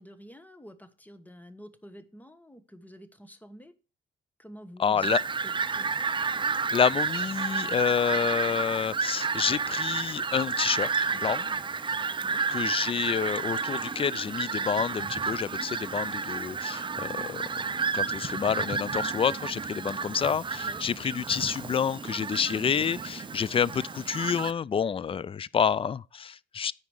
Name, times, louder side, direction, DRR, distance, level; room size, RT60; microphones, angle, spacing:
voice 1, 0.0-3.7 4.4-5.1 5.4-5.9 12.2-12.4 20.6-20.9, equal, 10° left, 1.2 m, -48 dB
voice 2, 4.8-5.2 6.7-11.6 12.5-17.6 17.9-26.7, left 7 dB, 30° left, 0.4 m, -28 dB
Fowl, 5.0-24.5, right 5 dB, 25° right, 0.5 m, -31 dB
9.6 x 5.0 x 6.4 m
cardioid pair, 90°, 20 cm